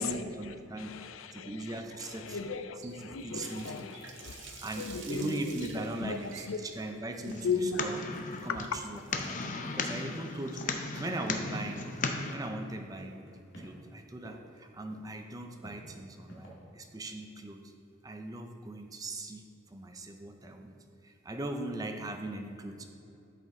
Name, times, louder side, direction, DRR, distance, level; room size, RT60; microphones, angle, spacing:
voice 1, 0.0-1.0 1.3-2.5 2.8-3.9 4.6-8.0 8.4-9.4 9.7-11.9 12.3-17.7 18.0-20.8 21.0-22.9, right 2 dB, 20° right, 5 dB, 0.5 m, -40 dB
voice 2, 0.8-6.2 6.5-6.6 7.2-7.9 8.5-8.6, left 4 dB, 85° left, 9 dB, 0.5 m, -36 dB
Water tap faucet, 2.8-11.7, right 6 dB, 60° right, 0.8 m, -51 dB
sound 1, 7.3-12.3, left 4 dB, 40° left, 0.5 m, -36 dB
sound 2, 11.5-11.6 11.9-12.0 12.2-12.7 13.0-13.7 14.2-14.6 14.9-15.1 15.6-16.5, right 1 dB, 65° left, 1.9 m, -49 dB
12.0 x 5.1 x 3.7 m, 2.7 s
head